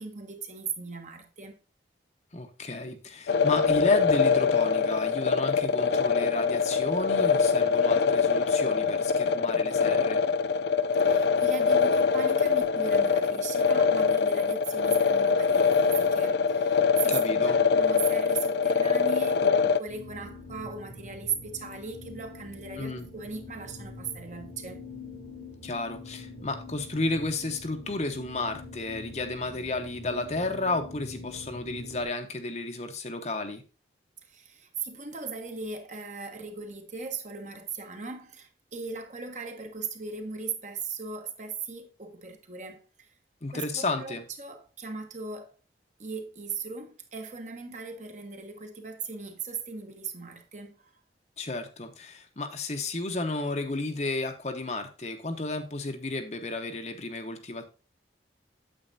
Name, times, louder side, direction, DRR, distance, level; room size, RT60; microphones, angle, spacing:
voice 1, 0.0-1.6 11.0-24.8 34.2-43.1 43.5-45.5 46.0-51.0, right 5 dB, 40° right, 1.3 m, -38 dB
voice 2, 2.3-10.2 17.1-17.6 22.8-23.1 25.6-33.6 43.4-44.2 51.4-57.6, left 2 dB, 40° left, 1.0 m, -32 dB
sound 1, 3.3-19.8, left 5 dB, 70° left, 0.4 m, -24 dB
sound 2, 19.9-32.0, left 2 dB, 85° left, 3.2 m, -44 dB
8.9 x 7.9 x 2.6 m
head